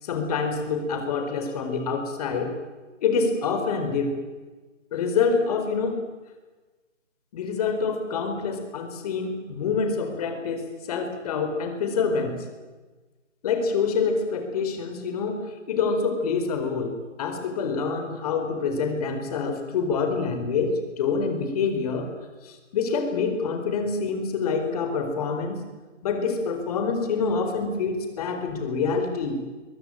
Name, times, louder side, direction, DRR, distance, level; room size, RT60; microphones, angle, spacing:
voice 1, 0.0-2.5 3.0-4.2 4.9-6.0 7.3-12.4 13.4-22.1 22.4-25.6 26.0-29.4, left 5 dB, 30° left, 7 dB, 4.4 m, -26 dB
24.0 x 23.0 x 9.1 m, 1.3 s
hypercardioid pair, 160°, 37 cm